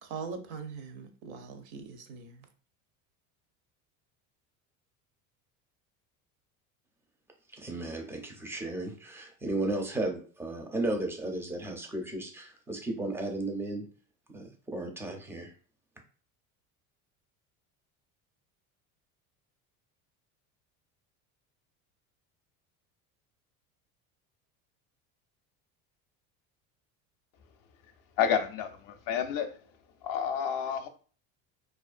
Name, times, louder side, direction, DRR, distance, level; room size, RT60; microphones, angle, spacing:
voice 1, 0.0-2.5, right 5 dB, 60° right, 0.6 m, -41 dB
voice 2, 7.5-13.8 14.3-15.5, right 2 dB, 5° right, 0.4 m, -34 dB
voice 3, 28.2-29.5 30.0-30.9, left 8 dB, 50° left, 0.5 m, -29 dB
2.4 x 2.1 x 2.4 m
supercardioid pair, 90°, 43 cm